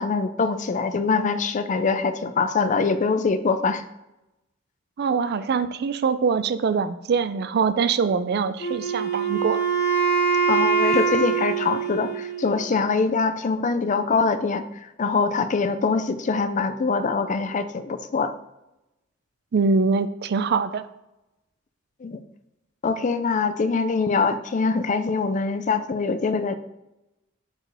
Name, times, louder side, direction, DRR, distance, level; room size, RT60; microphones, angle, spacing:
voice 1, 0.0-3.8 10.5-14.6 15.0-18.3 22.0-22.2 22.8-26.5, left 4 dB, 40° left, 11 dB, 0.4 m, -23 dB
voice 2, 5.0-9.6 19.5-20.9, right 5 dB, 55° right, 13 dB, 0.4 m, -23 dB
Wind instrument woodwind instrument, 8.6-12.6, right 6 dB, 65° left, 2.2 m, -23 dB
8.1 x 4.4 x 3.4 m, 0.91 s
head